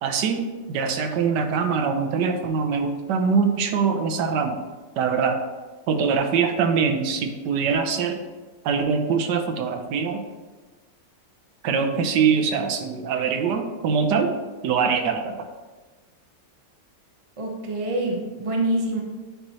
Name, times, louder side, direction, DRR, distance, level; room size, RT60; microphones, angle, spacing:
voice 1, 0.0-4.6 5.0-5.4 5.9-8.2 8.6-10.2 11.6-14.3 14.6-15.4, right 6 dB, 75° right, 6 dB, 1.2 m, -23 dB
voice 2, 17.4-19.0, right 1 dB, 35° right, 0 dB, 0.5 m, -26 dB
8.9 x 3.0 x 4.1 m, 1.3 s
omnidirectional pair, 2.0 m